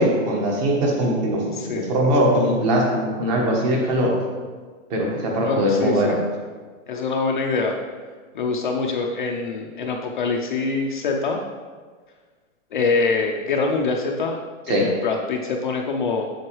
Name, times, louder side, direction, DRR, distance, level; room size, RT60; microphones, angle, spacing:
voice 1, 0.0-4.1 4.9-6.2 14.7-14.9, equal, 30° right, -1 dB, 1.3 m, -21 dB
voice 2, 1.5-1.9 5.4-6.2 6.9-7.8 8.3-11.4 12.7-14.4 14.7-16.2, left 4 dB, 40° left, 1 dB, 0.5 m, -24 dB
7.6 x 7.2 x 3.1 m, 1.5 s
hypercardioid pair, 170°, 40 cm